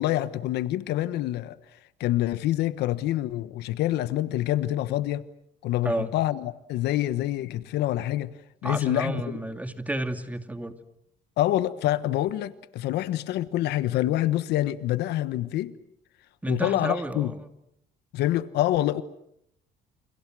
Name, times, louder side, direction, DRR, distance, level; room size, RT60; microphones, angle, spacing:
voice 1, 0.0-1.6 2.0-5.3 5.6-8.3 8.6-9.4 11.4-15.7 16.5-17.3 18.1-19.0, left 14 dB, 80° left, 1.3 m, -26 dB
voice 2, 8.6-10.8 16.4-17.5, right 1 dB, 10° right, 2.5 m, -31 dB
29.5 x 29.0 x 6.3 m
cardioid pair, 110°, 17 cm